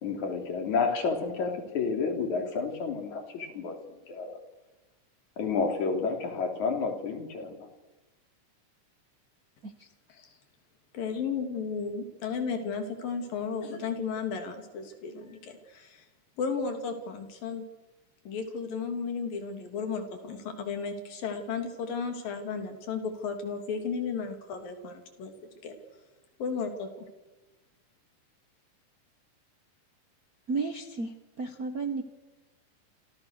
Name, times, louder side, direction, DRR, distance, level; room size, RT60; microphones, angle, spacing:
voice 1, 0.0-4.3 5.4-7.7, left 4 dB, 60° left, 4 dB, 4.6 m, -30 dB
voice 2, 10.9-16.0 16.4-17.7 18.2-25.3 25.6-25.7 26.4-27.1, left 5 dB, 85° left, 6 dB, 4.8 m, -34 dB
voice 3, 30.5-32.0, right 4 dB, 45° right, 6 dB, 1.2 m, -33 dB
28.0 x 27.5 x 6.7 m, 1.1 s
omnidirectional pair, 3.9 m